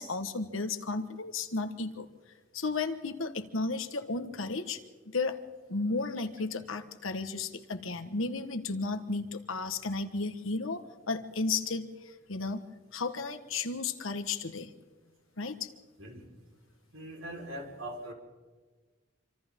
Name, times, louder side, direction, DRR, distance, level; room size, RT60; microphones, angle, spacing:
voice 1, 0.0-2.1 2.5-4.8 5.1-5.4 5.7-12.6 12.9-14.7 15.4-15.7, left 3 dB, 85° left, 8 dB, 1.5 m, -34 dB
voice 2, 16.9-18.1, right 1 dB, 90° right, 0 dB, 4.7 m, -41 dB
27.0 x 26.0 x 3.8 m, 1.3 s
head